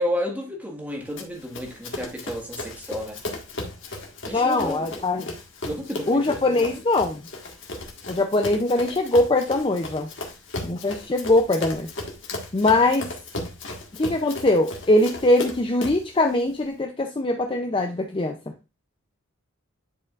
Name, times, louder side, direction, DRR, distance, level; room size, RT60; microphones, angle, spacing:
voice 1, 0.0-3.2 4.3-5.0 5.6-6.7, equal, 10° right, 1.6 m, -31 dB
Run, 1.2-16.1, left 2 dB, 65° left, 1.7 m, -36 dB
voice 2, 4.3-5.3 6.1-7.2 8.1-10.1 10.6-11.9 12.5-13.1 13.9-18.4, left 2 dB, 25° left, 0.5 m, -22 dB
10.5 x 4.9 x 2.4 m
head